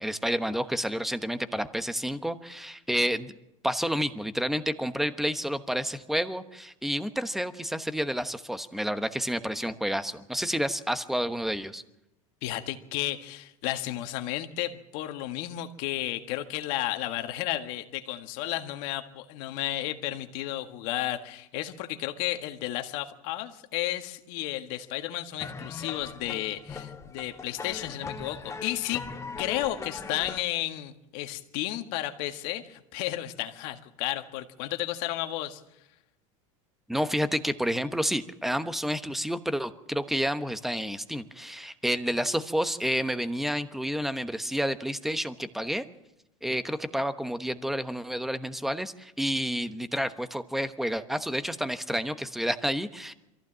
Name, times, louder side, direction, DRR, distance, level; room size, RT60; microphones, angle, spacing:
voice 1, 0.0-3.3 3.6-11.8 36.9-45.8 46.4-53.1, equal, ahead, 11 dB, 1.1 m, -30 dB
voice 2, 12.4-29.0 29.4-35.6, left 14 dB, 60° left, 7 dB, 1.7 m, -33 dB
sound 1, 25.4-30.4, left 4 dB, 15° left, 1.3 m, -40 dB
23.0 x 15.0 x 7.5 m, 0.93 s
hypercardioid pair, 105°, 17 cm